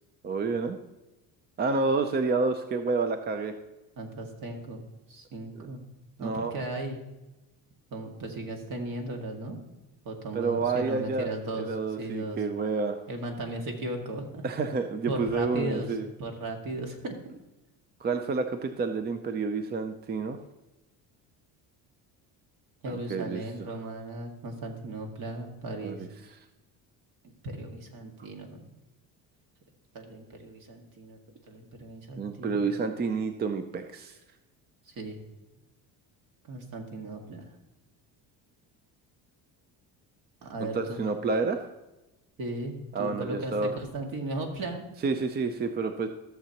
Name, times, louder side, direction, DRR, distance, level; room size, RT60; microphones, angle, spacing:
voice 1, 0.2-0.8 1.6-3.5 5.6-5.7 6.2-6.5 10.3-11.3 11.6-13.0 14.4-16.1 18.0-20.4 22.9-23.4 25.8-26.1 32.2-34.2 40.6-41.6 42.9-43.7 45.0-46.1, right 4 dB, 25° right, 8 dB, 0.5 m, -29 dB
voice 2, 4.0-4.8 5.1-5.8 6.2-7.0 7.9-9.6 10.0-12.4 13.1-14.4 15.0-17.2 22.8-26.1 27.2-28.6 29.9-31.2 31.5-32.7 34.9-35.2 36.5-37.5 40.4-41.0 42.4-44.8, right 2 dB, 55° right, 2 dB, 2.1 m, -36 dB
14.0 x 7.1 x 2.9 m, 1.0 s
cardioid pair, 125°, 38 cm